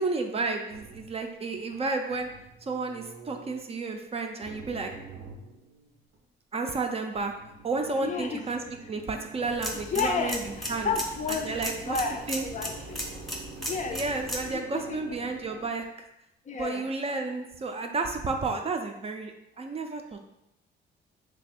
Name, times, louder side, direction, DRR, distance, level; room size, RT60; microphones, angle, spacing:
voice 1, 0.0-2.3 2.6-4.9 6.5-7.3 7.6-8.6 8.9-10.4 10.7-10.9 11.3-12.0 12.3-12.5 13.9-16.1 16.5-20.2, right 3 dB, 30° right, 4 dB, 0.4 m, -31 dB
sound 1, 0.7-3.7 4.4-6.2 7.2-15.7, right 4 dB, 85° right, 0.6 m, -47 dB
voice 2, 8.0-8.5 9.9-13.0 13.6-14.0 14.5-15.2 16.5-16.9, left 5 dB, 40° left, 4 dB, 0.4 m, -32 dB
sound 2, 9.4-14.5, equal, ahead, 0.7 m, -37 dB
3.2 x 2.2 x 4.3 m, 0.83 s
cardioid pair, 90°, 20 cm